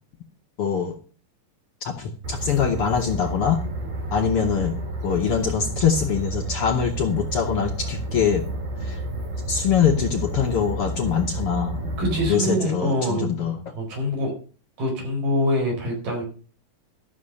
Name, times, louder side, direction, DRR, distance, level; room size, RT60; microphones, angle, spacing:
voice 1, 0.6-1.0 1.8-3.6 4.1-8.4 8.8-9.0 9.5-13.6, left 7 dB, 65° left, 4 dB, 1.5 m, -23 dB
sound 1, 2.2-12.3, right 2 dB, 55° right, 3.3 m, -30 dB
voice 2, 12.0-14.3 14.8-16.2, equal, 90° right, 0 dB, 6.5 m, -25 dB
13.0 x 6.6 x 6.5 m, 0.38 s
omnidirectional pair, 3.7 m